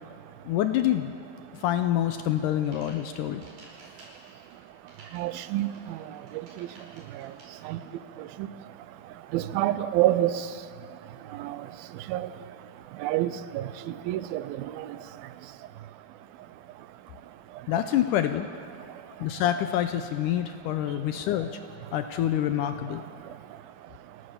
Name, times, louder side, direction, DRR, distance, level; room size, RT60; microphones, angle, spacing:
voice 1, 0.5-1.2 1.5-3.4 17.7-18.5 19.2-21.6 21.9-23.0, left 11 dB, 80° left, 9 dB, 2.0 m, -26 dB
sound 1, 2.5-7.4, right 2 dB, 65° right, 6.5 m, -53 dB
voice 2, 5.1-6.0 7.7-7.8 8.4-8.5 9.3-10.4 11.4-11.6 12.1-12.3 13.0-13.7 14.1-14.7, right 14 dB, 85° right, 14 dB, 2.5 m, -27 dB
29.5 x 13.0 x 6.9 m, 2.4 s
omnidirectional pair, 4.2 m